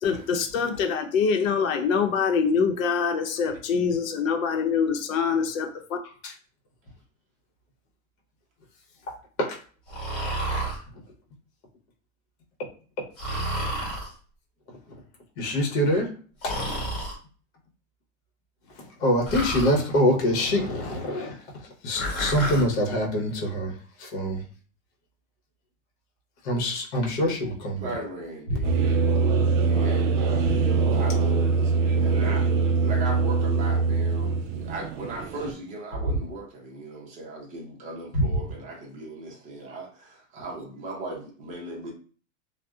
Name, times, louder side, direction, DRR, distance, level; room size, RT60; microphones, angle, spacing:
voice 1, 0.0-6.0, left 6 dB, 90° left, 0.7 m, -24 dB
Breathing, 9.9-10.8 13.2-14.1 16.4-17.2 19.3-19.8 21.9-22.7, right 1 dB, 35° left, 1.4 m, -30 dB
voice 2, 15.4-16.1 16.4-16.6 19.0-21.4 21.8-23.7 24.0-24.4 26.4-27.8 38.1-38.2, equal, 55° left, 1.0 m, -24 dB
voice 3, 27.8-29.0 29.4-41.9, right 2 dB, 20° right, 0.5 m, -38 dB
sound 1, 28.6-35.5, right 4 dB, 70° right, 0.6 m, -23 dB
2.6 x 2.0 x 2.3 m
supercardioid pair, 160°, 40 cm